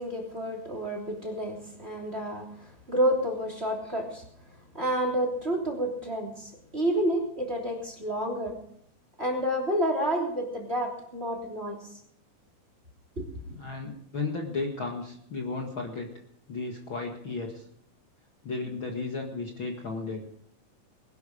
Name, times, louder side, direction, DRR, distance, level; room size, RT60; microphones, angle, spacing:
voice 1, 0.0-8.6 9.2-11.9 13.2-13.3, equal, 20° right, 2 dB, 3.1 m, -30 dB
voice 2, 13.5-16.1 16.5-17.7 18.4-20.2, left 3 dB, 45° left, 1 dB, 2.1 m, -34 dB
21.0 x 12.5 x 5.0 m, 0.69 s
omnidirectional pair, 3.8 m